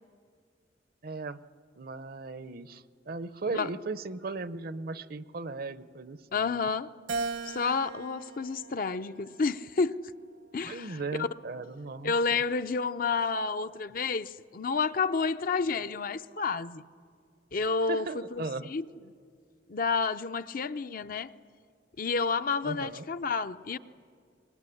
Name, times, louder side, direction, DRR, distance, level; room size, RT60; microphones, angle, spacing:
voice 1, 1.0-1.4 1.8-6.7 10.6-12.4 17.9-18.7 22.6-23.1, right 3 dB, 55° right, 15 dB, 0.7 m, -37 dB
voice 2, 6.3-6.9 7.4-10.0 10.5-11.3 12.0-16.8 17.5-18.8 19.7-21.3 22.0-23.8, left 4 dB, 50° left, 11 dB, 0.6 m, -30 dB
Keyboard (musical), 7.1-9.6 10.2-11.4, right 4 dB, 70° right, 1.2 m, -39 dB
24.0 x 20.5 x 9.9 m, 2.2 s
head